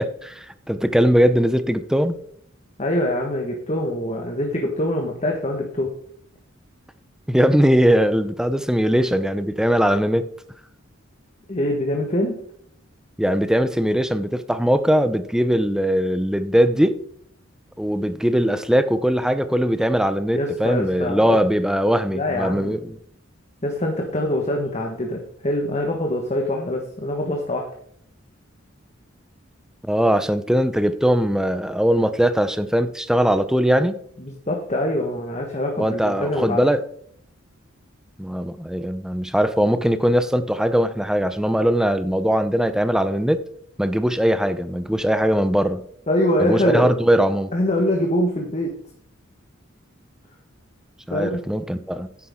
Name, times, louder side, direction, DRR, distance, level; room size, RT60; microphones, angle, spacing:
voice 1, 0.0-2.1 7.3-10.3 13.2-17.0 17.8-23.0 29.9-34.0 35.8-36.8 38.2-43.4 43.8-45.9 46.4-47.5 51.1-52.1, equal, 5° right, 11 dB, 0.5 m, -20 dB
voice 2, 2.8-5.9 11.5-12.4 20.3-21.4 22.1-22.8 23.6-27.7 34.2-36.6 46.1-46.9 47.5-48.7 51.1-51.4, left 1 dB, 35° left, 1 dB, 1.3 m, -24 dB
9.9 x 9.6 x 3.6 m, 0.67 s
head